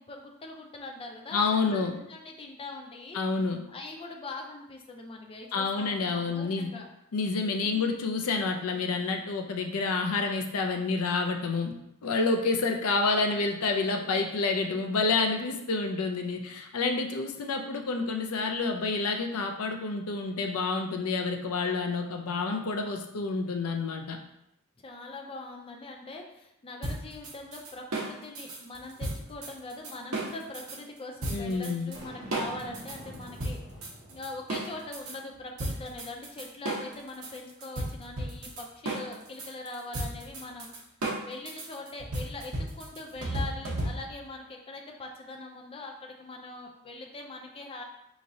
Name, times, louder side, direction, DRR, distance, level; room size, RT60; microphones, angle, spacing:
voice 1, 0.0-3.2 3.7-6.9 7.6-8.1 24.8-33.6 34.1-40.7 41.3-47.8, left 2 dB, 25° left, 1 dB, 0.4 m, -42 dB
voice 2, 1.3-2.0 3.1-3.6 5.5-6.7 7.1-11.7 12.0-24.2 31.3-32.0, left 4 dB, 80° left, 4 dB, 0.5 m, -28 dB
sound 1, 26.8-30.8 31.2-32.0 32.3-35.2 35.6-44.3, right 1 dB, 70° right, 1.0 m, -34 dB
Boom, 31.9-35.2, equal, 15° right, 1.5 m, -47 dB
5.0 x 3.0 x 2.7 m, 0.82 s
head